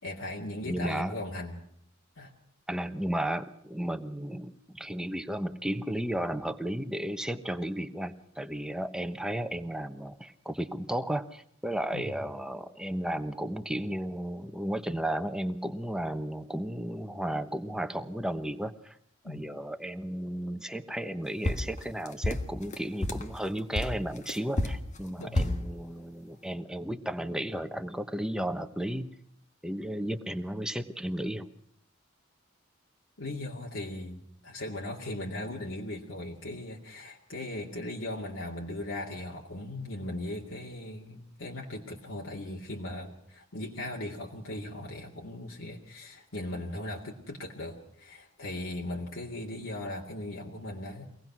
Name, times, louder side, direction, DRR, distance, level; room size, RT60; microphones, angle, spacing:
voice 1, 0.0-1.6 2.2-2.3 11.9-12.2 19.2-19.4 25.2-25.4 33.2-51.1, left 1 dB, 70° left, -2 dB, 2.5 m, -38 dB
voice 2, 0.6-1.2 2.7-19.0 19.2-29.2 29.6-31.5, right 1 dB, 5° right, 8 dB, 1.1 m, -34 dB
sound 1, 21.4-23.3 23.7-25.7, left 1 dB, 35° left, 1.5 m, -30 dB
24.0 x 18.5 x 6.1 m, 0.66 s
head